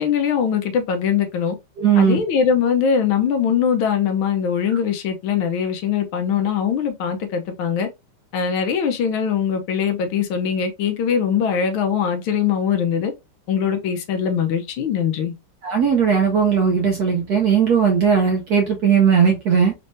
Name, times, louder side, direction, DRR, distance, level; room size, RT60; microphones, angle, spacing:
voice 1, 0.0-1.5 1.9-7.9 8.3-13.1 13.5-15.3, left 7 dB, 70° left, 1.5 m, -21 dB
voice 2, 1.8-2.2 15.6-19.7, right 7 dB, 65° right, 1.0 m, -17 dB
4.3 x 3.2 x 2.5 m
omnidirectional pair, 2.4 m